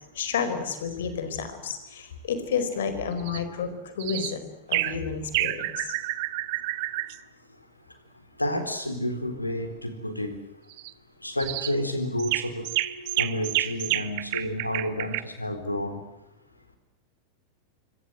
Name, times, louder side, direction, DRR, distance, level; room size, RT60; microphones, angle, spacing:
voice 1, 0.2-3.7 3.9-4.4 4.7-5.9, left 6 dB, 60° left, 10 dB, 4.6 m, -30 dB
sound 1, 3.2-3.4 4.0-4.4 4.7-5.0 5.3-7.2 10.7-10.9 11.4-11.8 12.2-15.2, right 18 dB, 50° right, 1.2 m, -29 dB
voice 2, 8.4-10.3 11.2-16.0, left 1 dB, 85° left, 8 dB, 4.2 m, -30 dB
26.5 x 24.5 x 8.0 m, 0.90 s
figure-of-eight pair, 90°, 0 cm